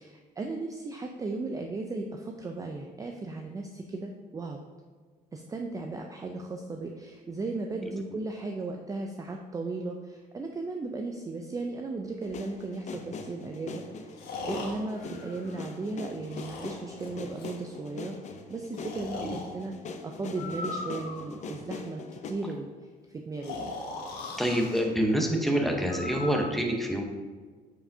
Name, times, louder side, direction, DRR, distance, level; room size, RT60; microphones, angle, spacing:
voice 1, 0.0-4.6 5.3-19.7 20.0-22.7 23.1-23.7, right 3 dB, 20° right, 3 dB, 0.4 m, -36 dB
sound 1, 12.2-22.3, left 4 dB, 45° left, 0.6 m, -42 dB
Breathing, 12.3-12.4 14.1-15.9 16.3-17.6 18.7-19.5 20.3-21.5 23.4-24.8 25.9-26.4, left 3 dB, 75° left, 1.4 m, -39 dB
voice 2, 24.4-27.0, equal, ahead, 1 dB, 0.9 m, -26 dB
8.9 x 4.8 x 2.7 m, 1.5 s
cardioid pair, 110°, 17 cm